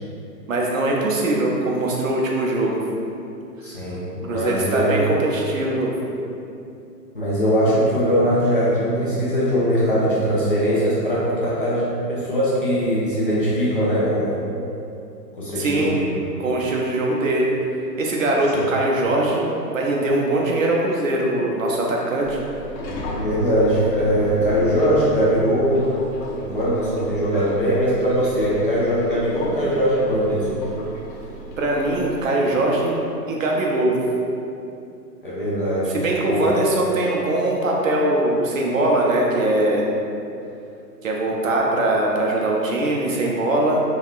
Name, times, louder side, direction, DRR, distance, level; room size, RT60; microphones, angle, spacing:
voice 1, 0.5-2.8 4.3-5.9 15.6-15.9 16.4-17.5 18.0-22.4 31.6-33.0 33.3-34.0 35.9-39.8 41.0-43.8, right 1 dB, 55° right, -2 dB, 0.5 m, -21 dB
voice 2, 3.6-5.0 7.1-14.3 15.3-16.1 23.1-25.8 26.1-30.6 35.2-35.8 36.3-36.4, equal, 35° left, -9 dB, 0.5 m, -21 dB
Subway metro underground, 22.2-32.3, equal, 85° left, 0.7 m, -34 dB
3.6 x 2.2 x 2.4 m, 2.7 s
hypercardioid pair, 155°, 50 cm